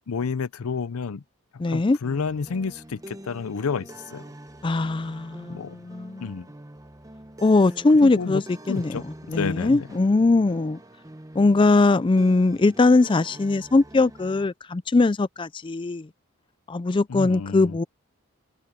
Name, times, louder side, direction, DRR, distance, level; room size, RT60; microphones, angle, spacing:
voice 1, 0.1-1.2 1.7-4.3 5.5-5.7 6.2-6.5 8.0-8.4 8.7-9.0 9.3-9.9 17.1-17.8, left 5 dB, 80° left, 0.5 m, -30 dB
voice 2, 1.6-2.0 4.6-6.3 7.4-9.0 9.3-10.8 11.3-16.1 16.7-17.8, left 3 dB, 20° left, 0.3 m, -21 dB
sound 1, 2.0-14.5, right 1 dB, 15° right, 1.0 m, -45 dB
head